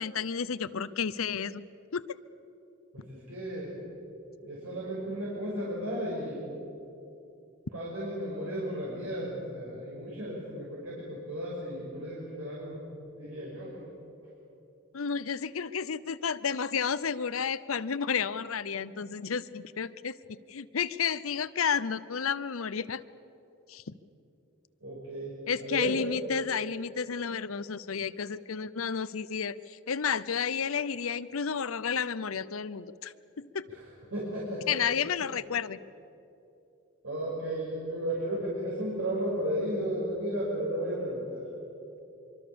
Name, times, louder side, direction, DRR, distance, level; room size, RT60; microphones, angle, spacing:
voice 1, 0.0-1.6 1.9-2.0 14.9-20.2 20.5-23.0 23.7-23.9 25.5-33.7 34.7-35.8, left 6 dB, 90° left, 16 dB, 0.7 m, -31 dB
voice 2, 2.9-3.8 4.4-6.4 7.7-12.8 13.2-13.8 24.8-26.0 33.7-33.8 34.1-34.6 37.0-41.4, right 1 dB, 80° right, -6 dB, 5.9 m, -34 dB
25.5 x 24.0 x 7.0 m, 2.9 s
head